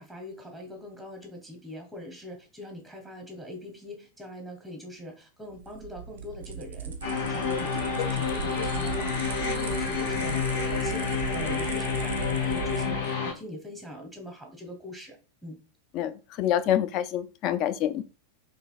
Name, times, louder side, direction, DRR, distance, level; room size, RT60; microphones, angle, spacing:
voice 1, 0.0-15.2 15.4-15.6, left 1 dB, ahead, 0.9 m, -42 dB
sound 1, 5.5-13.2, right 7 dB, 60° right, 0.4 m, -37 dB
sound 2, 7.0-13.3, left 6 dB, 60° left, 0.8 m, -29 dB
voice 2, 15.9-18.0, left 11 dB, 40° left, 0.3 m, -27 dB
3.9 x 2.7 x 2.3 m
figure-of-eight pair, 90°, 0 cm